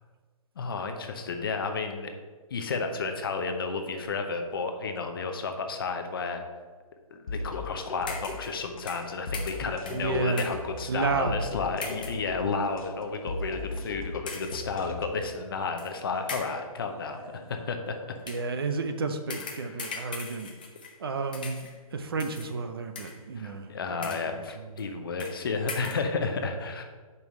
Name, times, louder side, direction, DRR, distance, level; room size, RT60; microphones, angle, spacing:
voice 1, 0.6-2.1 2.5-6.4 7.1-17.2 17.5-18.0 19.6-19.8 23.4-26.8, left 4 dB, 40° left, 6 dB, 0.7 m, -32 dB
sound 1, 7.3-15.3, left 3 dB, 65° left, 0.9 m, -38 dB
sound 2, 8.1-8.6 8.9-10.7 11.8-12.3 13.0-13.1 14.3-14.7 15.8-15.9 16.3-16.7 18.2-18.5 19.3-21.0 21.3-21.8 22.2-22.5 22.9-23.4 23.9-24.4 24.8-24.9 25.2-25.4 25.7-26.1, left 4 dB, 15° left, 0.4 m, -40 dB
sound 3, 8.1-8.6 9.0-11.2 11.5-18.7 19.0-19.3 19.8-19.9 20.3-20.4, left 2 dB, 10° right, 2.0 m, -49 dB
voice 2, 9.6-10.5 10.9-11.4 12.5-12.7 18.3-20.5 21.0-23.7 24.0-24.2 24.8-24.9, right 4 dB, 40° right, 7 dB, 0.5 m, -32 dB
5.4 x 4.7 x 6.3 m, 1.4 s
hypercardioid pair, 170°, 19 cm